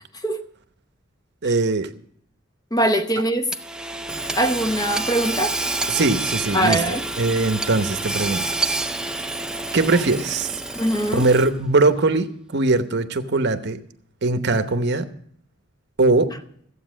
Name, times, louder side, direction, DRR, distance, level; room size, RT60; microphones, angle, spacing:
voice 1, 1.4-1.9 5.9-8.5 9.1-9.2 9.7-10.6 11.1-13.8 14.2-15.1 16.0-16.3, right 3 dB, 60° right, 0.9 m, -21 dB
voice 2, 2.7-3.5 4.4-5.6 6.5-7.0 10.7-11.3, right 1 dB, 20° left, 0.9 m, -22 dB
Hammer / Sawing, 3.5-11.7, right 2 dB, 5° right, 0.4 m, -28 dB
14.5 x 8.3 x 6.2 m
head